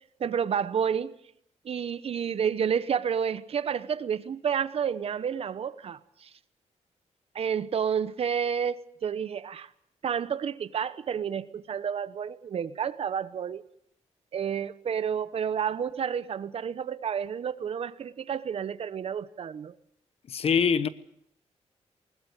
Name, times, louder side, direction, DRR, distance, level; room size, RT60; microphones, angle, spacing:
voice 1, 0.2-1.1 1.6-6.3 7.3-9.7 10.0-13.6 14.3-19.7, right 7 dB, 55° right, 0.9 m, -30 dB
voice 2, 20.3-20.9, left 6 dB, 55° left, 1.1 m, -23 dB
20.5 x 20.0 x 8.2 m
wide cardioid pair, 155°, 12 cm